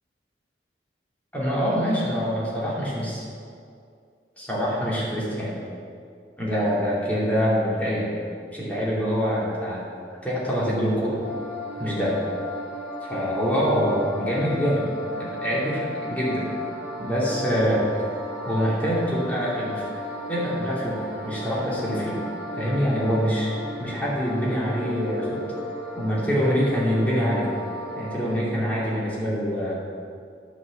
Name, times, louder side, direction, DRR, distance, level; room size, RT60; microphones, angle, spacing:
voice 1, 1.3-3.2 4.4-5.5 6.4-8.1 8.5-9.8 10.2-11.2 11.8-12.2 13.0-14.8 15.1-16.5 17.0-17.8 18.4-19.9 20.3-22.2 22.6-23.5 23.8-25.4 25.9-27.5 27.9-29.8, equal, 10° left, -7 dB, 2.8 m, -25 dB
sound 1, 11.2-28.3, left 1 dB, 10° right, 2.7 m, -35 dB
10.0 x 6.4 x 7.3 m, 2.3 s
head